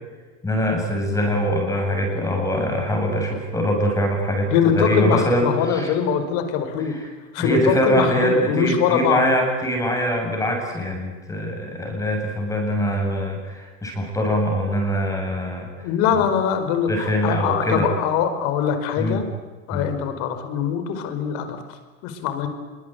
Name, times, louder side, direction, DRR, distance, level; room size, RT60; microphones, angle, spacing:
voice 1, 0.4-5.9 6.9-7.0 7.4-15.7 16.9-17.9 19.0-19.2 19.7-19.9, equal, 10° left, 2 dB, 7.8 m, -23 dB
voice 2, 4.5-7.0 7.3-9.2 15.8-19.3 19.7-21.8 22.0-22.5, left 7 dB, 45° left, 9 dB, 5.1 m, -22 dB
26.0 x 24.0 x 9.5 m, 1.4 s
supercardioid pair, 140°, 39 cm